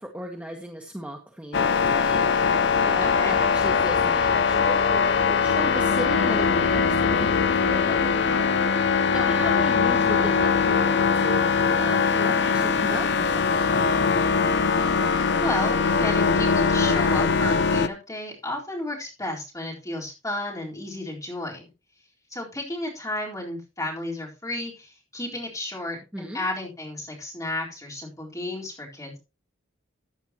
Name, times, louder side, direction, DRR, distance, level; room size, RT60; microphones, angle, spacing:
voice 1, 0.0-8.5 8.9-14.2 26.1-26.4, right 1 dB, 5° right, 2 dB, 1.2 m, -36 dB
sound 1, 1.5-17.9, left 5 dB, 60° left, 0.6 m, -21 dB
voice 2, 3.0-3.4 9.2-9.5 15.4-21.6 22.3-29.2, left 1 dB, 15° left, -3 dB, 4.0 m, -33 dB
14.5 x 9.0 x 2.9 m, 0.28 s
head